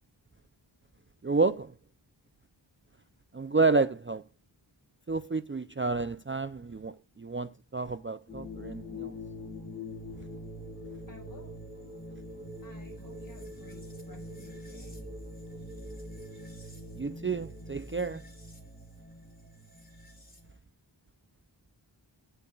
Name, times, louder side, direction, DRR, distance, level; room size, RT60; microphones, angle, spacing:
voice 1, 1.2-1.8 3.3-4.2 5.1-9.2 17.0-18.2, right 4 dB, 25° right, 0.5 m, -30 dB
sound 1, 8.3-20.6, left 1 dB, 20° left, 4.2 m, -44 dB
voice 2, 11.1-11.6 12.6-15.0, equal, 45° left, 5.1 m, -54 dB
18.0 x 6.8 x 2.4 m
wide cardioid pair, 50°, 45 cm